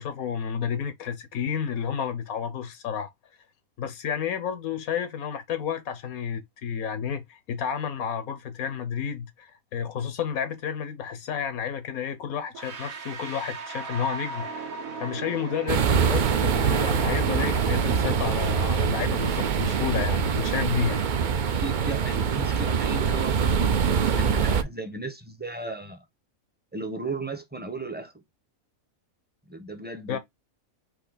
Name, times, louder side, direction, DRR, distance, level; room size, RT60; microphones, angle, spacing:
voice 1, 0.0-3.1 3.8-14.7 15.0-21.0 30.1-30.2, left 7 dB, 85° left, 1.3 m, -31 dB
sound 1, 12.5-23.4, right 5 dB, 80° right, 1.5 m, -40 dB
sound 2, 15.7-24.6, right 6 dB, 55° right, 0.5 m, -24 dB
voice 2, 21.5-26.0 26.7-28.1 29.5-30.2, right 3 dB, 10° right, 0.7 m, -35 dB
4.7 x 2.9 x 3.9 m
omnidirectional pair, 1.4 m